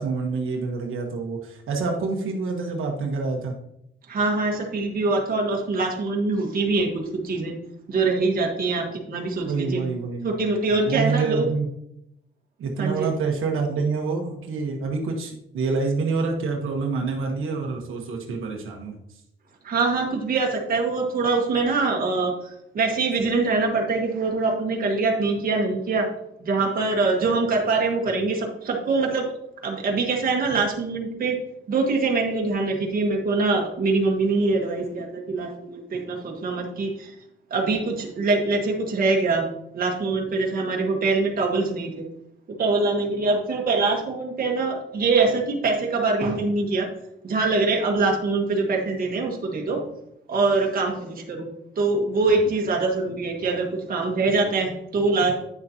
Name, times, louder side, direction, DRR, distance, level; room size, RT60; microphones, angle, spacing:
voice 1, 0.0-3.5 9.5-10.3 10.7-11.7 12.6-19.0, right 4 dB, 80° right, 1 dB, 1.3 m, -27 dB
voice 2, 4.1-7.5 7.9-9.8 10.2-11.5 12.8-13.1 19.6-22.3 22.7-26.1 26.4-29.3 29.6-31.4 31.7-37.1 37.5-39.5 39.7-42.0 42.6-46.9 47.2-49.8 50.3-51.5 51.8-55.4, right 3 dB, 45° right, 0 dB, 1.5 m, -23 dB
9.6 x 6.6 x 2.9 m, 0.80 s
wide cardioid pair, 165°, 21 cm